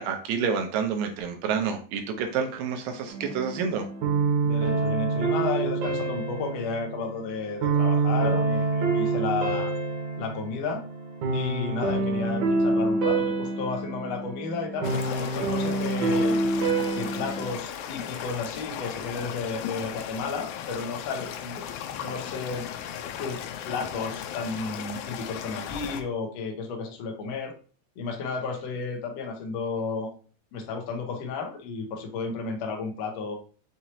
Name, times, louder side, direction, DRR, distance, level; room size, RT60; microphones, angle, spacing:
voice 1, 0.0-3.9 22.0-22.1, right 6 dB, 80° right, 5 dB, 2.4 m, -29 dB
sound 1, 3.1-17.5, right 3 dB, 65° right, 2.1 m, -27 dB
voice 2, 4.4-9.7 10.2-10.8 11.3-16.4 17.0-21.6 22.0-22.6 23.2-27.5 28.0-30.1 30.5-33.3, left 4 dB, 75° left, 2 dB, 1.6 m, -33 dB
sound 2, 14.8-26.0, left 9 dB, 90° left, 2.3 m, -36 dB
6.2 x 2.9 x 2.7 m, 0.38 s
omnidirectional pair, 4.0 m